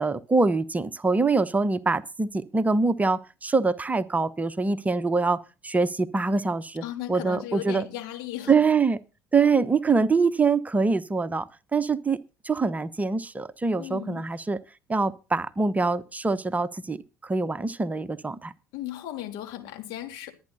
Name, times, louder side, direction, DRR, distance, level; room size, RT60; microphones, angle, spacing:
voice 1, 0.0-7.9 8.5-9.0 9.3-12.2 12.4-14.6 14.9-18.5, right 4 dB, 20° right, 1.0 m, -24 dB
voice 2, 6.8-8.6 13.8-14.2 18.7-20.3, left 13 dB, 60° left, 3.3 m, -36 dB
22.5 x 9.6 x 2.8 m
figure-of-eight pair, 60°, 8 cm